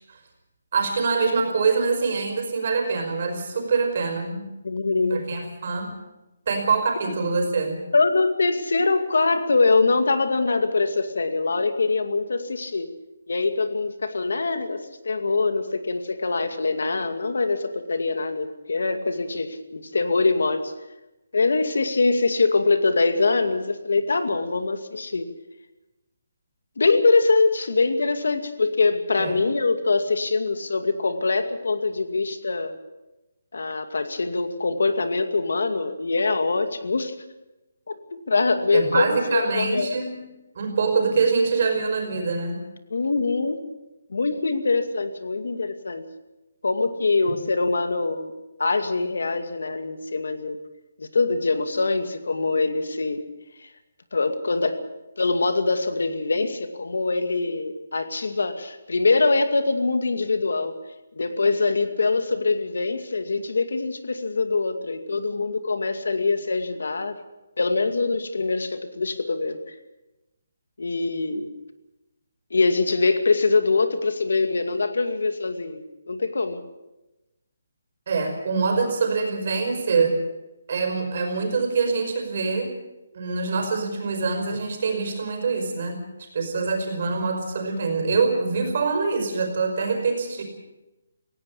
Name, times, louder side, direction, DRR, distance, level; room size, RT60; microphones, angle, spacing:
voice 1, 0.7-4.5 5.1-5.9 6.5-7.8 29.2-29.4 38.7-40.2 40.6-42.6 78.1-80.2 80.7-82.7 83.1-90.4, right 4 dB, 40° right, 4 dB, 5.2 m, -24 dB
voice 2, 4.6-5.2 7.9-12.9 13.3-20.7 21.3-25.3 26.8-32.8 33.5-37.1 37.9-39.9 42.9-43.6 44.1-46.1 46.6-48.3 48.6-50.6 51.0-53.3 54.1-54.8 55.2-60.8 61.2-67.2 67.6-69.6 70.8-71.5 72.5-76.7, left 3 dB, 80° left, 8 dB, 2.4 m, -23 dB
19.0 x 17.0 x 8.4 m, 0.99 s
hypercardioid pair, 175°, 0 cm